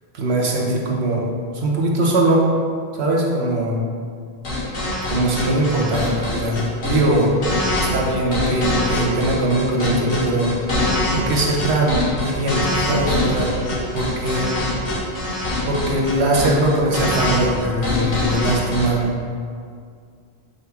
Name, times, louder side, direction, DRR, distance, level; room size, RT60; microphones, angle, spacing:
voice 1, 0.1-2.5 3.0-3.8 5.1-7.4 7.9-10.5 11.1-13.5 13.9-14.5 15.7-19.1, right 1 dB, 70° right, -2 dB, 1.2 m, -21 dB
sound 1, 4.4-18.9, left 1 dB, 60° left, 1.4 m, -23 dB
5.3 x 3.6 x 5.7 m, 2.2 s
omnidirectional pair, 1.1 m